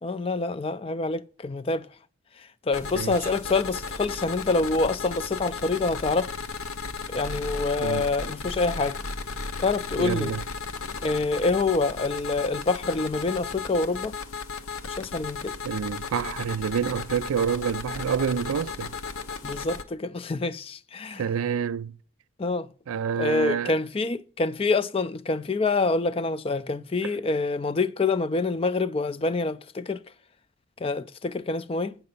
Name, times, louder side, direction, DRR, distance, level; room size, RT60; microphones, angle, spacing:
voice 1, 0.0-1.9 2.7-6.3 7.1-9.0 9.6-10.3 11.0-14.2 14.9-15.6 19.4-21.2 22.4-22.7 23.2-30.0 30.8-32.0, left 3 dB, 25° left, 0.3 m, -26 dB
sound 1, 2.7-19.8, left 4 dB, 85° left, 0.8 m, -35 dB
voice 2, 10.0-10.4 15.6-18.9 21.2-21.9 22.9-23.7 27.0-27.1, right 7 dB, 85° right, 0.4 m, -28 dB
8.6 x 5.8 x 5.4 m
head